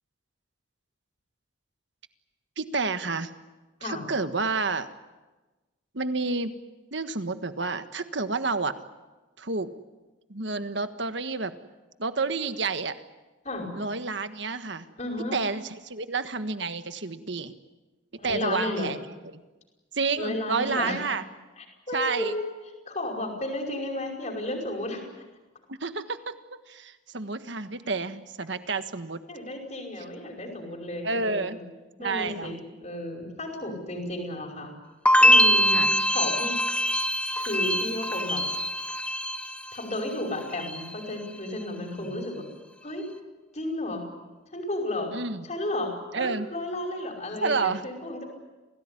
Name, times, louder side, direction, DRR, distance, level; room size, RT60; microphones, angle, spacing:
voice 1, 2.6-3.3 3.8-4.9 5.9-6.5 6.9-8.7 9.4-9.7 10.3-11.5 12.0-12.9 13.8-14.9 15.3-17.5 18.2-19.0 19.9-21.2 21.9-22.3 25.7-29.2 31.0-31.6 32.0-32.5 35.7-35.9 41.9-42.2 45.1-45.4 46.1-46.5 47.4-47.8, right 4 dB, 65° right, 10 dB, 1.5 m, -30 dB
voice 2, 15.0-15.4 18.2-18.9 20.2-21.0 21.6-22.4 22.9-25.1 29.3-31.6 32.0-34.7 35.2-35.8 36.1-36.6 37.4-38.4 38.9-39.0 39.7-42.5 42.8-43.1 43.5-44.1 44.5-45.1 45.4-48.2, left 1 dB, 35° left, 2 dB, 5.3 m, -33 dB
sound 1, 35.1-40.1 40.4-41.0, left 1 dB, 5° left, 1.1 m, -23 dB
28.0 x 18.0 x 9.9 m, 1.2 s
head